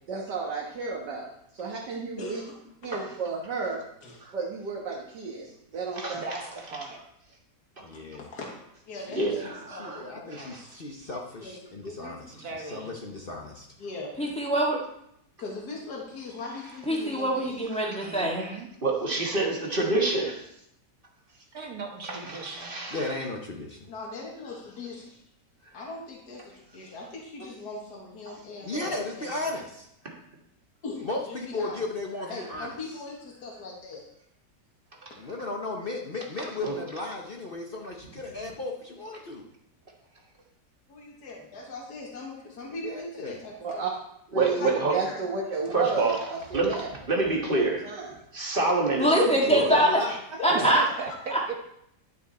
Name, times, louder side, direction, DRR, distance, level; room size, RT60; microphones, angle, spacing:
voice 1, 0.1-1.3 1.5-2.4 2.8-3.8 4.3-5.5 5.7-6.2 43.6-43.9 44.3-46.9 47.5-48.1, right 4 dB, 90° right, -2 dB, 2.0 m, -32 dB
voice 2, 2.2-2.5 2.8-3.1 4.0-4.2 8.2-8.5 8.9-9.4 9.7-10.5 11.4-11.5 11.8-12.2 12.6-12.7 13.8-14.1 15.4-17.6 23.9-25.0 25.7-26.4 26.7-29.5 30.8-31.8 32.3-34.0 40.9-43.8 44.4-44.7 45.0-45.2 50.4-51.0, left 3 dB, 70° left, -2 dB, 2.3 m, -40 dB
voice 3, 6.1-7.0 12.3-12.9 18.0-18.7 21.5-22.8 50.5-51.4, right 3 dB, 60° right, 1 dB, 1.9 m, -38 dB
voice 4, 7.8-8.3 9.1-13.7 22.9-23.9 28.6-29.9 31.0-33.0 35.1-39.5 42.7-43.4 49.4-50.2, left 2 dB, 40° left, 0 dB, 1.0 m, -35 dB
voice 5, 9.1-10.0 10.3-10.6 17.9-18.0 18.8-20.4 22.1-23.0 28.3-28.4 36.6-36.7 44.3-45.0 45.7-46.2 46.5-47.9 48.3-49.8 50.5-50.7, right 3 dB, 35° right, 0 dB, 1.7 m, -27 dB
voice 6, 14.2-14.8 16.9-18.5 49.0-50.0 50.4-50.8 51.3-51.5, right 1 dB, 5° left, -3 dB, 1.7 m, -24 dB
11.0 x 7.0 x 4.2 m, 0.75 s
omnidirectional pair, 1.8 m